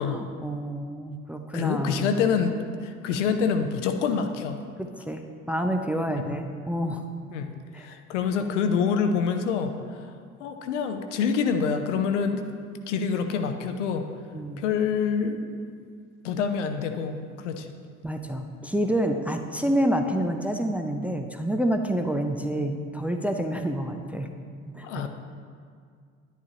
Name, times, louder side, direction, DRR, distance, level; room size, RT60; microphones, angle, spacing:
voice 1, 0.0-2.1 4.8-7.0 7.7-7.9 14.3-14.6 18.0-24.3 24.7-25.1, right 1 dB, 5° right, 4 dB, 0.5 m, -28 dB
voice 2, 1.5-4.6 6.2-6.4 7.3-10.1 10.4-12.5 12.9-14.1 14.6-15.4 16.2-17.7 24.8-25.1, left 6 dB, 70° left, 7 dB, 0.7 m, -26 dB
10.5 x 10.5 x 2.9 m, 2.1 s
figure-of-eight pair, 55°, 38 cm